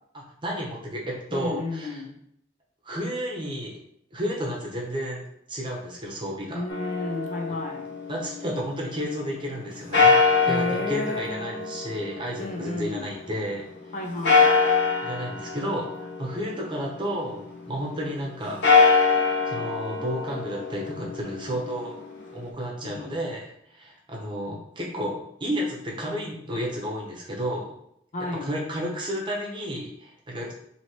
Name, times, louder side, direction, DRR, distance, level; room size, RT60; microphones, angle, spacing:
voice 1, 0.1-2.0 2.8-3.8 4.1-6.7 8.1-13.6 15.0-18.7 19.5-21.9 22.3-27.7 28.3-30.5, equal, 25° right, -2 dB, 0.9 m, -32 dB
voice 2, 1.3-2.2 6.5-7.8 10.5-11.7 12.4-13.0 13.9-14.5 22.8-23.2 28.1-28.5, left 2 dB, 40° left, 1 dB, 0.6 m, -32 dB
sound 1, 6.7-8.8 9.9-13.3 14.2-17.2 18.5-22.5, left 4 dB, 75° left, 0.8 m, -24 dB
3.1 x 2.9 x 4.2 m, 0.73 s
head